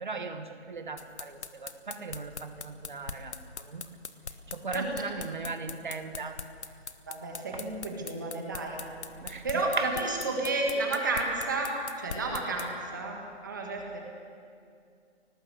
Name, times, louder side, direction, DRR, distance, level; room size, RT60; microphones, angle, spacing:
voice 1, 0.0-3.9 4.5-6.4 7.5-7.6 9.1-10.0, right 4 dB, 45° right, 7 dB, 1.7 m, -38 dB
sound 1, 1.0-12.7, left 5 dB, 75° left, 1.6 m, -40 dB
voice 2, 7.1-8.8 9.4-11.7 12.0-14.0, right 2 dB, 15° right, 0 dB, 1.7 m, -31 dB
21.0 x 19.0 x 8.0 m, 2.3 s
hypercardioid pair, 175°, 34 cm